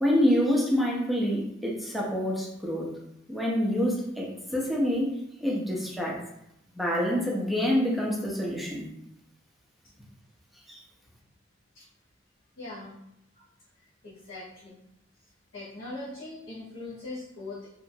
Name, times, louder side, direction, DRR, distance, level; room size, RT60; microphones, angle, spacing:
voice 1, 0.0-2.9 3.3-6.2 6.7-8.8 10.7-10.8, equal, ahead, -3 dB, 0.5 m, -27 dB
voice 2, 12.6-12.9 13.3-13.4 14.0-14.8 15.5-17.7, left 2 dB, 85° left, -11 dB, 1.0 m, -40 dB
2.8 x 2.4 x 2.6 m, 0.80 s
head